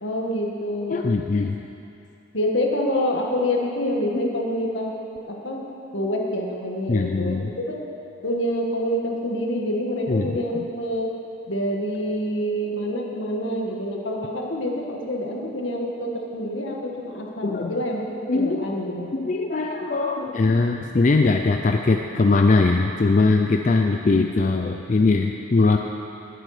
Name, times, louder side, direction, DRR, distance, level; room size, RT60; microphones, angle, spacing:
voice 1, 0.0-1.0 2.3-4.9 5.3-5.7 5.9-7.8 8.2-11.1 11.5-19.1, equal, 70° left, 0 dB, 1.6 m, -27 dB
voice 2, 0.9-1.6 6.9-7.5 10.1-10.7 17.4-17.8 18.3-18.7 19.1-25.8, left 3 dB, 40° left, 3 dB, 0.4 m, -21 dB
19.0 x 7.8 x 4.9 m, 2.8 s
head